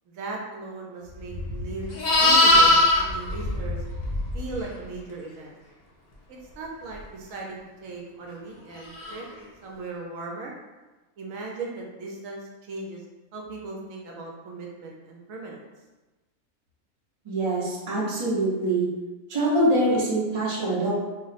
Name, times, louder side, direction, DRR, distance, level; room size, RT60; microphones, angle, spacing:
voice 1, 0.1-3.8 4.3-5.6 6.3-9.2 9.6-10.5 11.2-13.0 13.3-15.6, right 3 dB, 75° right, -1 dB, 0.9 m, -37 dB
Livestock farm animals working animals, 1.3-4.6 8.9-9.2, left 2 dB, 60° left, 0.4 m, -20 dB
voice 2, 17.3-18.9 19.3-20.9, right 1 dB, 40° right, -5 dB, 0.5 m, -24 dB
2.4 x 2.1 x 3.9 m, 1.2 s
omnidirectional pair, 1.5 m